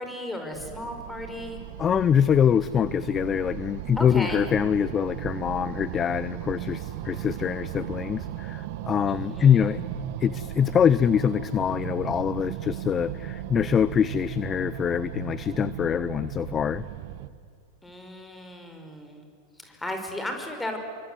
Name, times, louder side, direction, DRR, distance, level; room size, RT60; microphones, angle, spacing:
voice 1, 0.0-1.6 4.0-4.5 9.1-9.8 17.8-19.3 19.6-20.8, left 1 dB, 10° left, 5 dB, 5.4 m, -35 dB
sound 1, 0.5-17.3, right 12 dB, 55° right, 1.5 m, -36 dB
voice 2, 1.8-9.8 10.2-16.9, left 8 dB, 25° left, 17 dB, 0.7 m, -24 dB
29.5 x 24.5 x 8.1 m, 2.2 s
figure-of-eight pair, 90°, 0 cm